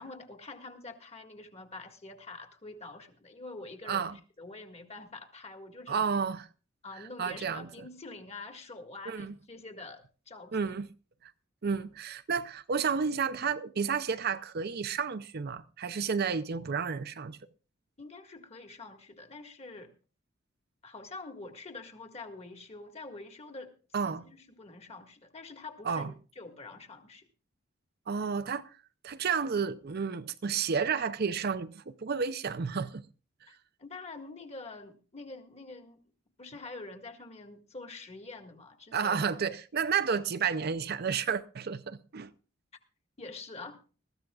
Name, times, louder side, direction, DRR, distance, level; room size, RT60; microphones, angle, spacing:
voice 1, 0.0-4.1 4.4-6.1 6.8-10.7 18.0-19.9 20.8-23.7 24.1-27.3 33.5-36.0 36.4-39.2 43.2-43.8, left 3 dB, 35° left, 1.8 m, -46 dB
voice 2, 3.8-4.2 5.9-6.5 7.0-7.7 9.1-9.4 10.5-10.9 11.2-11.3 11.6-17.4 23.9-24.3 25.8-26.1 28.1-28.7 29.0-33.0 38.9-42.3, right 6 dB, 55° right, 0.6 m, -31 dB
21.0 x 14.0 x 2.4 m
head